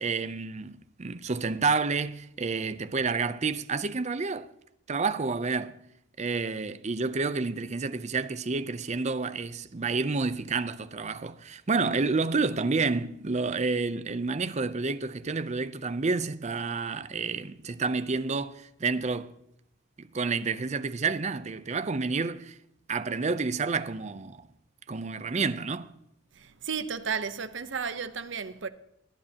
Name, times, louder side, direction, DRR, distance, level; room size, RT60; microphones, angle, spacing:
voice 1, 0.0-4.5 4.9-5.8 6.2-19.3 20.0-22.6 22.9-24.4 24.9-25.9, right 4 dB, 35° right, 0.6 m, -29 dB
voice 2, 26.3-28.7, right 6 dB, 65° right, 0.8 m, -33 dB
20.0 x 11.0 x 2.9 m
head